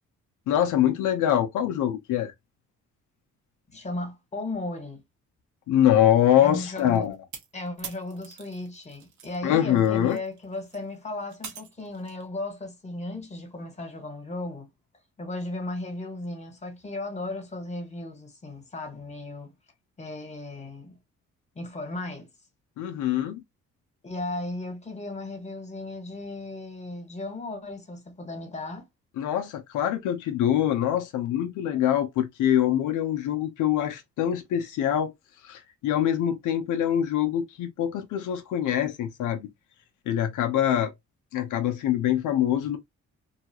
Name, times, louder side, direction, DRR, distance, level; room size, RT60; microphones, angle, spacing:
voice 1, 0.5-2.3 5.7-7.2 9.4-10.2 22.8-23.4 29.2-35.1 35.4-39.5 40.1-40.9 41.3-42.8, left 11 dB, 85° left, 0.6 m, -24 dB
voice 2, 3.7-5.0 6.4-7.1 7.5-14.7 15.2-19.5 20.0-21.0 21.5-22.3 24.0-28.9, left 2 dB, 25° left, 1.4 m, -36 dB
sound 1, 6.8-9.4 9.7-12.2, right 7 dB, 70° right, 1.0 m, -44 dB
2.8 x 2.3 x 2.8 m
cardioid pair, 90°, 30 cm